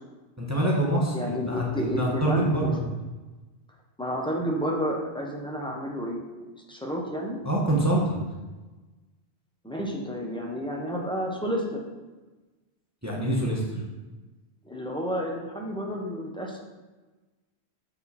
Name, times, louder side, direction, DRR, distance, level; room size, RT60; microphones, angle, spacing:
voice 1, 0.4-2.8 7.4-8.2 13.0-13.8, right 1 dB, 15° right, -3 dB, 0.9 m, -25 dB
voice 2, 1.1-2.7 4.0-6.2 6.7-7.4 9.6-11.8 13.7-13.8 14.6-16.6, equal, 5° left, -1 dB, 0.8 m, -30 dB
7.0 x 3.6 x 4.2 m, 1.2 s
omnidirectional pair, 1.1 m